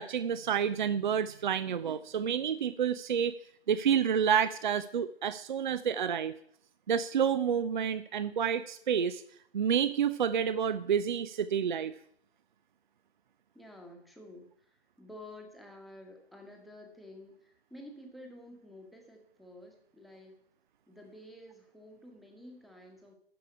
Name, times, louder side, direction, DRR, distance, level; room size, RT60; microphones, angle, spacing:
voice 1, 0.0-3.4 3.7-6.3 6.9-9.2 9.5-11.9, right 8 dB, 45° right, 15 dB, 0.5 m, -29 dB
voice 2, 13.5-20.4 20.9-23.2, left 1 dB, ahead, 3 dB, 1.2 m, -51 dB
13.0 x 4.9 x 8.6 m, 0.66 s
figure-of-eight pair, 130°, 32 cm